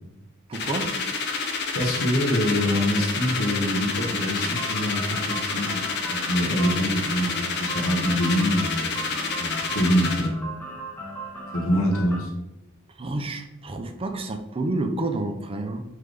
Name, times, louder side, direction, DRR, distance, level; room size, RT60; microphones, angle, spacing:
sound 1, 0.5-10.3, left 4 dB, 55° left, 0.6 m, -29 dB
voice 1, 0.5-0.9 13.0-15.8, right 2 dB, 25° right, 5 dB, 0.4 m, -29 dB
voice 2, 1.7-10.4 11.5-12.3, equal, 70° left, -1 dB, 0.9 m, -25 dB
sound 2, 2.5-12.2, right 1 dB, 10° left, 0.7 m, -37 dB
3.8 x 3.3 x 3.3 m, 0.94 s
head